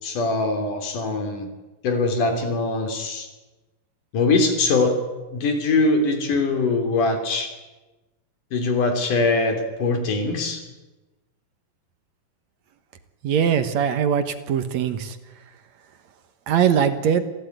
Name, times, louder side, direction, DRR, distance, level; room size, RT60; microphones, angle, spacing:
voice 1, 0.0-1.5 1.8-3.3 4.1-5.0 5.3-7.5 8.5-10.6, left 3 dB, 60° left, 6 dB, 4.6 m, -22 dB
voice 2, 13.2-15.2 16.5-17.2, right 8 dB, 60° right, 9 dB, 2.2 m, -21 dB
27.5 x 16.5 x 9.4 m, 1.1 s
omnidirectional pair, 4.3 m